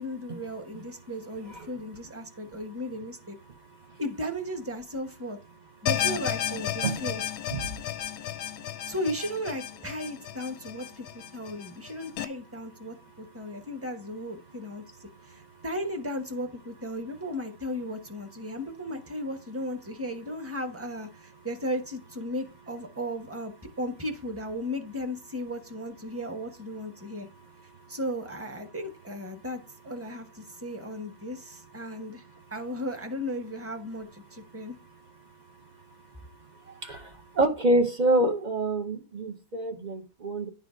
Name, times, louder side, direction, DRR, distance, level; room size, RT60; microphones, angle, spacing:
voice 1, 0.0-3.4 4.0-5.4 5.8-7.2 8.8-11.1 11.3-27.3 27.9-34.8, equal, 10° right, 0.7 m, -35 dB
sound 1, 5.9-12.2, left 11 dB, 90° left, 1.4 m, -33 dB
voice 2, 37.4-40.5, right 1 dB, 85° right, 0.4 m, -26 dB
10.5 x 4.0 x 5.0 m
omnidirectional pair, 2.1 m